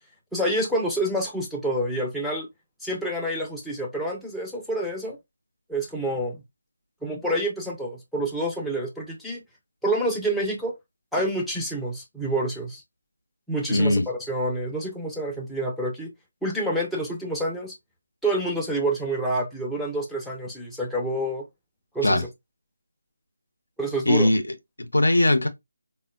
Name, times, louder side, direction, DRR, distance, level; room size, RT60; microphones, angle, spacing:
voice 1, 0.3-2.5 2.8-5.2 5.7-6.4 7.0-9.4 9.8-10.7 11.1-12.8 13.5-16.1 16.4-17.7 18.2-21.4 21.9-22.3 23.8-24.3, right 1 dB, ahead, 0.4 m, -28 dB
voice 2, 13.7-14.0 22.0-22.2 24.1-25.5, left 1 dB, 75° left, 0.5 m, -20 dB
3.5 x 2.1 x 2.2 m
figure-of-eight pair, 155°, 0 cm